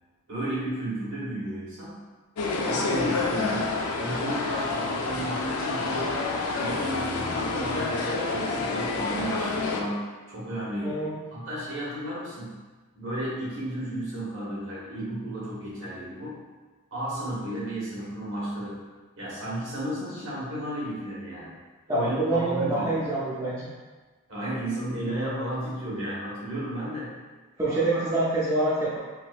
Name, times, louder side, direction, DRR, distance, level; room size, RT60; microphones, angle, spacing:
voice 1, 0.3-2.0 2.6-6.3 6.6-11.0 11.3-12.6 12.9-16.4 16.9-18.9 19.2-21.6 21.9-23.0 24.3-27.2 27.7-28.0, right 1 dB, 60° right, -8 dB, 1.2 m, -33 dB
sound 1, 2.4-9.8, left 3 dB, 80° left, 0.4 m, -28 dB
voice 2, 10.8-11.2 21.9-23.6 27.6-29.0, right 2 dB, 15° right, -9 dB, 0.4 m, -26 dB
3.7 x 2.5 x 2.4 m, 1.3 s
head